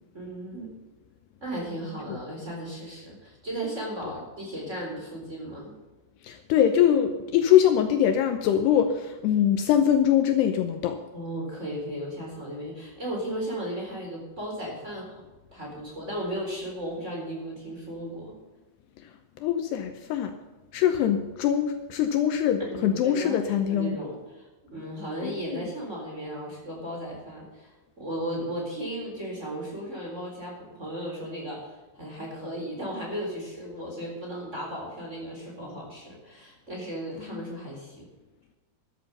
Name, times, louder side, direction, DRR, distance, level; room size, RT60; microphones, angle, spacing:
voice 1, 0.1-0.7 1.4-5.7 11.1-15.2 15.5-18.3 22.6-38.1, right 1 dB, 15° right, -2 dB, 3.7 m, -35 dB
voice 2, 6.2-11.0 19.4-20.3 20.7-24.0 25.2-25.7 37.3-37.5, left 10 dB, 75° left, 7 dB, 2.7 m, -23 dB
13.0 x 12.5 x 5.5 m, 1.2 s
omnidirectional pair, 5.2 m